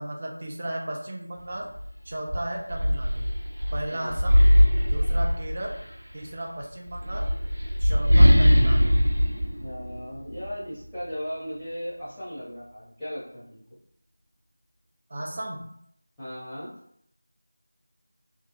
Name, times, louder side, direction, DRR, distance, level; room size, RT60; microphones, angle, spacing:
voice 1, 0.0-1.7 2.1-3.3 3.7-4.3 4.8-5.7 6.1-7.3 7.8-9.0 15.1-15.7, right 1 dB, 30° right, 0 dB, 0.4 m, -35 dB
sound 1, 1.7-1.9 2.3-5.9 6.9-10.5, equal, 80° right, 0.6 m, -21 dB
voice 2, 3.9-4.2 9.6-13.8 16.2-16.7, equal, 5° left, -20 dB, 0.7 m, -37 dB
2.7 x 2.3 x 2.4 m, 0.71 s
figure-of-eight pair, 170°, 0 cm